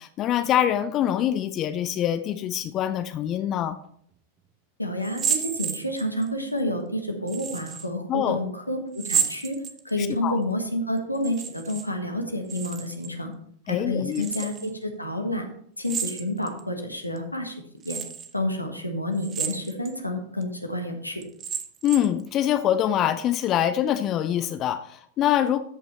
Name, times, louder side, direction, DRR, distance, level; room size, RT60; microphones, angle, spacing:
voice 1, 0.0-3.8 8.1-8.4 10.0-10.4 13.7-14.3 21.8-25.6, left 11 dB, 35° left, 11 dB, 0.5 m, -24 dB
voice 2, 4.8-9.6 9.8-13.3 13.7-15.4 15.8-17.5 17.8-18.0 18.3-21.2, left 1 dB, 85° left, 4 dB, 1.5 m, -29 dB
sound 1, 5.0-6.3 7.3-7.9 8.9-10.1 11.1-11.9 12.1-13.1 14.1-14.7 15.8-16.6 17.2-17.3 17.8-18.3 19.2-19.9 20.4-20.5 21.2-22.2, right 7 dB, 25° right, 0.9 m, -31 dB
13.5 x 5.7 x 4.3 m, 0.67 s
figure-of-eight pair, 90°, 0 cm